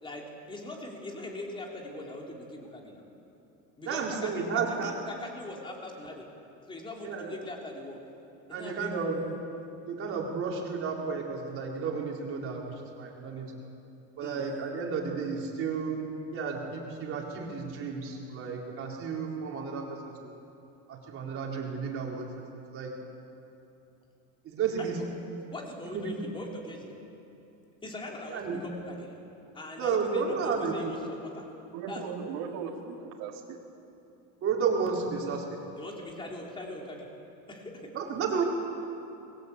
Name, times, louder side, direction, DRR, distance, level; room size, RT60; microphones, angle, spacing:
voice 1, 0.0-3.0 3.8-6.3 6.7-8.0 8.5-9.1 14.2-14.4 24.8-25.0 25.5-27.0 27.8-29.2 29.5-31.5 31.9-32.2 35.8-37.1 37.5-37.9, left 1 dB, 10° left, 0 dB, 3.4 m, -41 dB
voice 2, 3.8-4.9 7.0-7.3 8.5-9.2 9.9-13.5 14.2-20.4 20.9-22.3 22.7-22.9 24.4-25.0 25.9-26.1 28.3-28.6 29.8-30.9 34.4-35.4 37.9-38.4, right 5 dB, 30° right, -1 dB, 4.4 m, -32 dB
voice 3, 31.7-33.6, right 6 dB, 75° right, -2 dB, 3.3 m, -38 dB
28.0 x 22.0 x 8.4 m, 2.8 s
cardioid pair, 180°, 41 cm